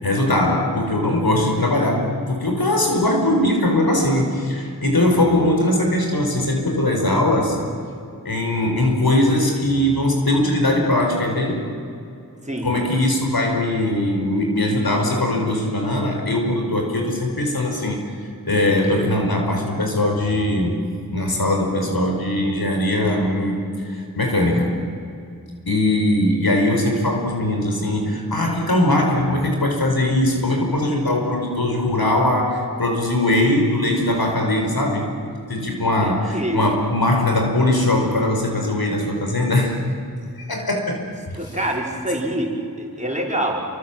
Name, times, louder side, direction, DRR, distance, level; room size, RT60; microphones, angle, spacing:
voice 1, 0.0-7.7 8.2-11.7 12.6-18.2 18.4-20.8 21.1-24.9 25.7-35.2 35.5-39.8 40.4-41.0 41.3-41.4, left 1 dB, 75° left, 2 dB, 5.1 m, -20 dB
voice 2, 35.8-36.6 41.4-43.6, right 1 dB, 20° right, -2 dB, 5.7 m, -26 dB
28.5 x 24.5 x 7.6 m, 2.5 s
wide cardioid pair, 55°, 37 cm